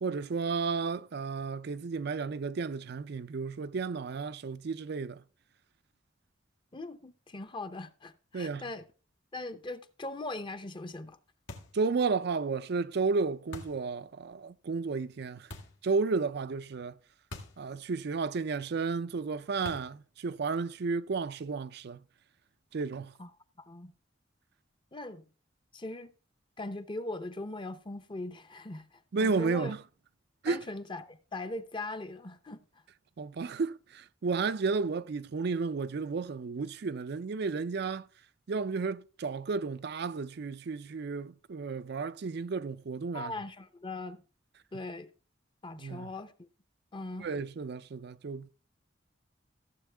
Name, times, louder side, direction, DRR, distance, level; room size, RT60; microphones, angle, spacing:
voice 1, 0.0-5.2 8.3-8.7 11.7-15.5 15.8-17.0 17.6-22.0 22.7-23.1 29.1-29.8 30.4-30.6 33.2-38.1 38.5-43.3 45.8-46.1 47.2-48.5, right 4 dB, 60° right, 0.5 m, -32 dB
voice 2, 6.7-8.8 9.3-11.2 23.2-23.3 23.6-23.9 24.9-25.2 25.7-26.1 26.6-29.7 30.5-32.6 43.1-44.2 44.7-45.1 45.6-46.5 46.9-47.3, left 2 dB, 25° left, 0.7 m, -40 dB
sound 1, 11.5-11.9 13.5-13.9 15.5-15.8 17.3-17.7 17.9-18.0 19.6-20.0, left 1 dB, 80° left, 2.0 m, -44 dB
15.0 x 7.3 x 3.4 m
head